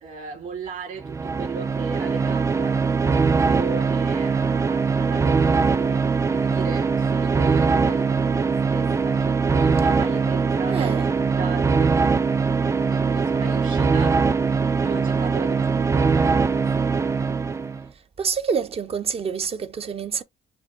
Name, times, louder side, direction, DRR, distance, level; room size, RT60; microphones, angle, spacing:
voice 1, 0.0-11.0 11.4-14.6 14.8-16.9, right 4 dB, 50° right, 2.5 m, -37 dB
sound 1, 1.0-17.8, right 5 dB, 15° right, 0.3 m, -21 dB
voice 2, 10.7-11.1 18.2-20.2, right 6 dB, 35° right, 0.7 m, -27 dB
5.0 x 2.2 x 3.7 m
cardioid pair, 110°, 17 cm